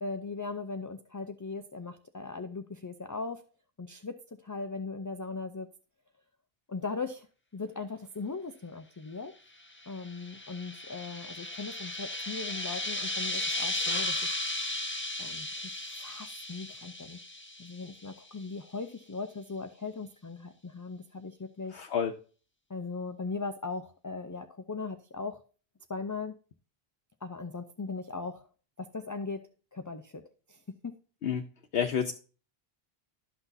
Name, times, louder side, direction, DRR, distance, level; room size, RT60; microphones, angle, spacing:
voice 1, 0.0-3.4 3.8-4.1 4.4-5.7 6.7-7.3 7.5-9.3 9.9-14.2 15.2-17.2 17.6-21.8 22.7-25.4 25.9-26.3 27.2-28.5 28.8-29.4 29.7-30.2 30.5-30.9, left 4 dB, 30° left, 8 dB, 0.4 m, -38 dB
sound 1, 9.8-18.1, left 1 dB, 10° left, 0.9 m, -35 dB
voice 2, 21.7-22.1 31.2-31.5 31.7-32.1, left 7 dB, 75° left, 4 dB, 0.9 m, -29 dB
12.0 x 6.0 x 2.7 m, 0.38 s
omnidirectional pair, 1.0 m